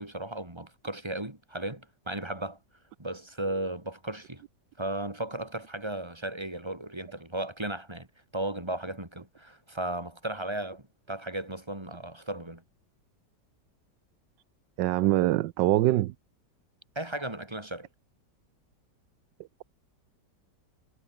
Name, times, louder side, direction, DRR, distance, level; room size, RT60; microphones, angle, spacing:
voice 1, 0.0-2.6 3.0-4.4 4.8-8.1 8.3-12.6 17.0-17.9, right 1 dB, 15° right, 3.5 m, -35 dB
voice 2, 14.8-16.1, right 15 dB, 90° right, 1.3 m, -23 dB
omnidirectional pair, 1.9 m